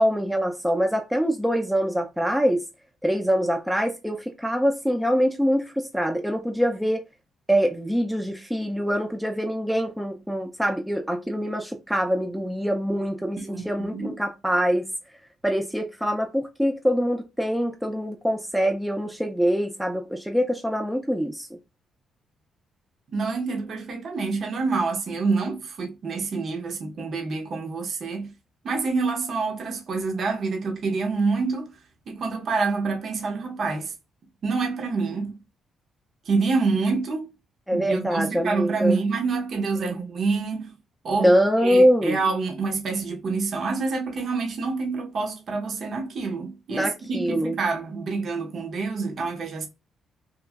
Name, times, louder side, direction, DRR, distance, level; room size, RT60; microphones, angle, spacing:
voice 1, 0.0-2.6 3.0-7.0 7.5-14.9 15.4-21.5 37.7-39.0 39.8-39.9 41.1-42.2 46.7-47.6, equal, ahead, 0.4 m, -24 dB
voice 2, 13.4-14.2 23.1-28.3 28.6-31.7 32.1-33.9 34.4-35.3 36.3-37.3 37.7-40.7 41.0-41.3 41.6-49.7, right 4 dB, 55° right, 0.7 m, -27 dB
2.9 x 2.4 x 2.3 m
cardioid pair, 90°, 0 cm